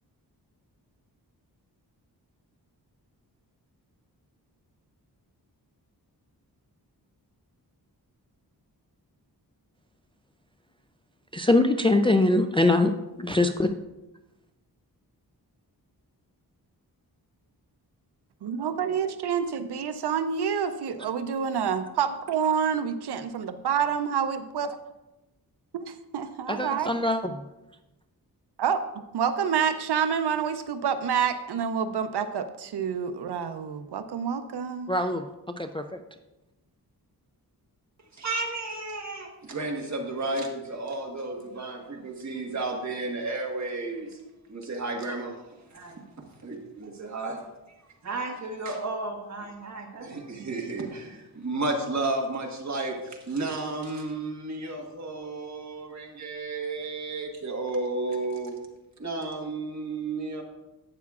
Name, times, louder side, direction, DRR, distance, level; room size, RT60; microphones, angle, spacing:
voice 1, 11.3-12.9 13.2-13.7 26.5-27.3 34.9-35.3 35.6-36.0, left 2 dB, 15° left, 0.3 m, -23 dB
voice 2, 18.4-24.8 25.7-26.9 28.6-28.8 29.1-34.9, right 7 dB, 90° right, 0.6 m, -28 dB
voice 3, 38.1-44.2 44.5-45.3 45.7-46.0 46.4-47.4 48.0-58.5 59.0-60.4, right 2 dB, 45° right, 1.5 m, -32 dB
12.0 x 8.2 x 2.4 m
wide cardioid pair, 135°, 39 cm